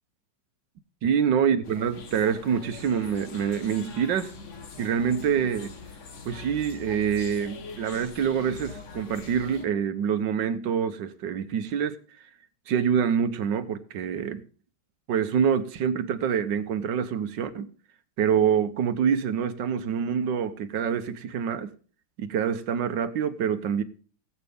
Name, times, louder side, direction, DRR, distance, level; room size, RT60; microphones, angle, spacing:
voice 1, 1.0-4.3 4.8-5.7 6.2-12.0 12.7-14.4 15.1-17.7 18.2-21.7 22.2-23.8, right 7 dB, 75° right, 1.6 m, -26 dB
sound 1, 1.6-9.6, left 4 dB, 45° left, 1.5 m, -43 dB
18.5 x 8.2 x 3.5 m
omnidirectional pair, 2.0 m